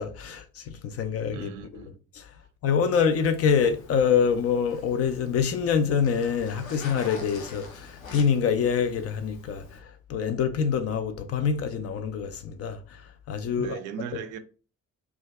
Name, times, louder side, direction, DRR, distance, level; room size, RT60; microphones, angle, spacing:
voice 1, 0.0-1.5 2.1-2.3 2.6-13.8, left 6 dB, 40° left, 0.4 m, -26 dB
voice 2, 1.3-1.9 13.6-14.4, right 7 dB, 50° right, 0.5 m, -37 dB
Zipper (clothing), 2.9-9.8, left 4 dB, 85° left, 0.6 m, -45 dB
2.5 x 2.3 x 3.3 m
figure-of-eight pair, 45°, 40 cm